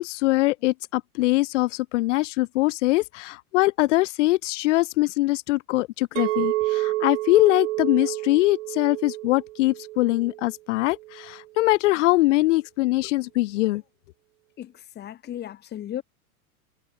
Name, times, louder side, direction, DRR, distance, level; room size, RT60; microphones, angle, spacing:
voice 1, 0.0-13.8, left 19 dB, 50° left, 4.9 m, -22 dB
Chink clink, 6.2-10.5 11.0-11.3, right 18 dB, 55° right, 4.6 m, -29 dB
voice 2, 14.6-16.0, left 11 dB, 20° left, 4.7 m, -35 dB
supercardioid pair, 150°, 44 cm